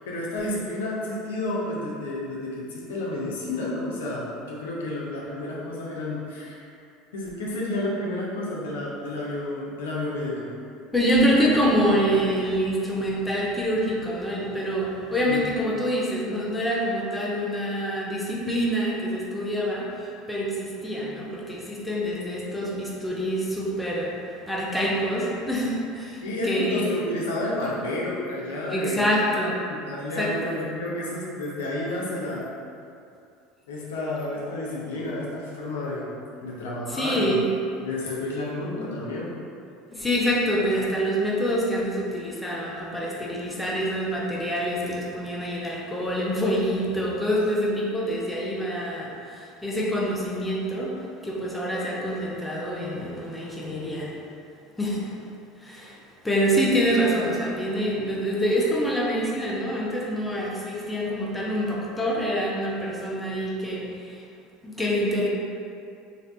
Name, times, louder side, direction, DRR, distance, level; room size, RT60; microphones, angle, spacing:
voice 1, 0.1-6.6 7.1-10.5 15.3-15.5 26.2-29.2 29.7-32.5 33.7-36.1 36.4-37.4 37.8-39.3, left 1 dB, 80° left, -5 dB, 0.6 m, -30 dB
voice 2, 10.9-26.8 28.7-29.6 30.2-30.4 36.9-37.5 39.9-54.2 54.8-55.2 55.6-64.3 64.6-65.3, equal, 5° left, -4 dB, 0.6 m, -26 dB
3.2 x 2.6 x 2.6 m, 2.4 s
hypercardioid pair, 75°, 0 cm